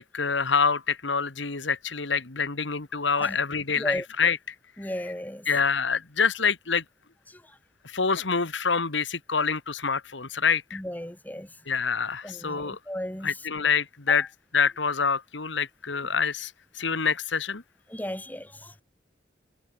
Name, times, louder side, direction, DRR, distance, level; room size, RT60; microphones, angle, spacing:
voice 1, 0.0-4.4 4.8-4.9 5.5-6.8 7.8-10.8 11.7-12.8 13.2-14.3 14.5-17.6, left 5 dB, 85° left, 1.9 m, -26 dB
voice 2, 4.8-5.5 7.3-7.4 10.7-11.5 12.2-13.3 17.9-18.7, equal, 10° left, 1.7 m, -35 dB
head